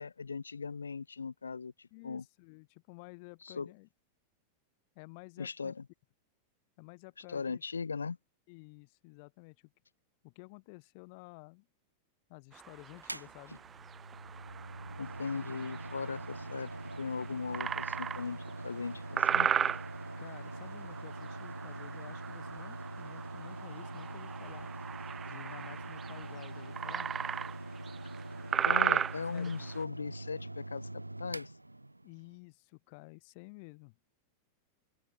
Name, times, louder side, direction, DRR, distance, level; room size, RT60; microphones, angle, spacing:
voice 1, 0.0-2.2 3.4-3.7 5.4-5.8 7.3-8.2 15.0-16.7 17.0-19.5 28.6-31.5, left 5 dB, 75° left, 2.4 m, -38 dB
voice 2, 1.9-3.9 5.0-5.7 6.8-7.6 8.5-9.7 10.2-11.7 12.3-13.6 16.2-16.3 20.2-24.7 25.3-27.1 28.9-29.0 29.3-29.7 32.0-34.0, left 31 dB, 45° left, 5.7 m, -52 dB
sound 1, 12.5-29.8, right 8 dB, 25° right, 0.5 m, -37 dB
Mechanical fan, 13.0-32.4, right 2 dB, 85° right, 3.7 m, -44 dB
open air
figure-of-eight pair, 90°, 0 cm